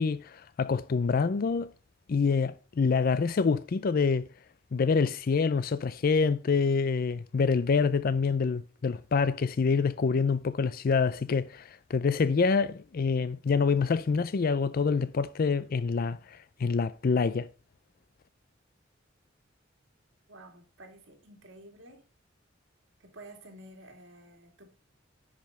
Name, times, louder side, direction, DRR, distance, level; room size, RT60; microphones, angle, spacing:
voice 1, 0.0-1.7 2.1-4.3 4.7-17.5, left 5 dB, 50° left, 0.4 m, -26 dB
voice 2, 20.3-22.0 23.0-24.7, right 1 dB, 70° right, 2.5 m, -51 dB
10.5 x 5.2 x 5.3 m
head